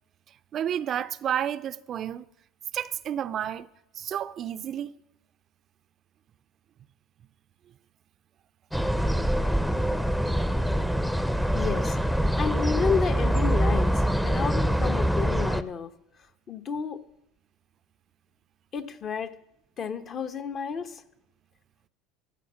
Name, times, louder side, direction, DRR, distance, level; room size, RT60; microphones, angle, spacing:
voice 1, 0.5-2.3 2.7-3.7 4.0-4.9, right 10 dB, 45° right, 0.5 m, -30 dB
sound 1, 8.7-15.6, equal, ahead, 0.7 m, -24 dB
voice 2, 11.5-15.9 16.5-17.0 18.7-19.4 19.8-21.0, left 6 dB, 40° left, 1.0 m, -31 dB
14.5 x 6.1 x 7.1 m
hypercardioid pair, 75°, 0 cm